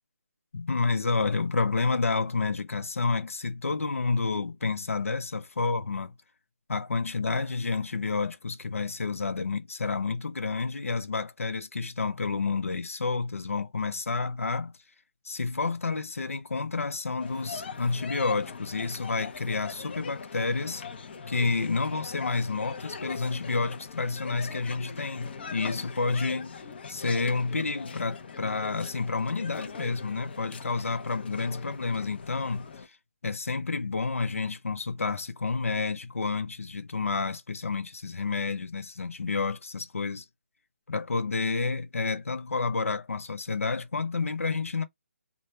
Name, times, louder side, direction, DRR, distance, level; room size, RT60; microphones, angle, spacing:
voice 1, 0.5-6.1 6.7-14.7 15.2-20.8 21.3-26.6 26.9-33.0 33.2-40.2 40.9-44.8, left 4 dB, 85° left, 0.9 m, -30 dB
sound 1, 17.2-32.9, left 5 dB, 50° left, 0.9 m, -41 dB
4.0 x 2.4 x 3.2 m
hypercardioid pair, 155°, 7 cm